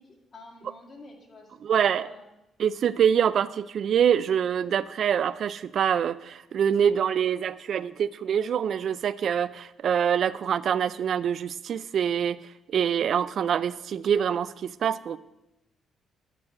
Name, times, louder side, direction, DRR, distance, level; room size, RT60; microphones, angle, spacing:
voice 1, 0.0-2.3, left 2 dB, 50° left, 0 dB, 2.2 m, -49 dB
voice 2, 1.6-2.1 2.6-12.4 12.7-15.2, right 8 dB, 60° right, 16 dB, 0.4 m, -25 dB
10.5 x 4.6 x 6.5 m, 0.94 s
cardioid pair, 90°, 0 cm